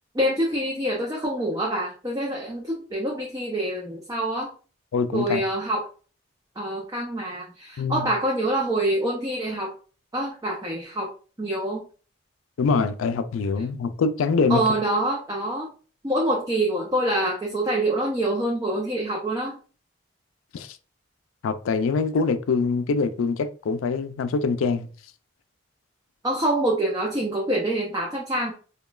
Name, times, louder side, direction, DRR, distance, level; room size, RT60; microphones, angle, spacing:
voice 1, 0.1-4.5 5.1-5.8 6.6-9.7 10.1-11.1 11.4-11.8 14.5-15.7 16.0-19.6 26.2-28.5, right 1 dB, 20° right, 0.5 m, -26 dB
voice 2, 4.9-5.4 7.8-8.1 12.6-14.6 20.5-20.8 21.4-24.9, left 4 dB, 90° left, 0.4 m, -24 dB
5.1 x 2.2 x 2.3 m
head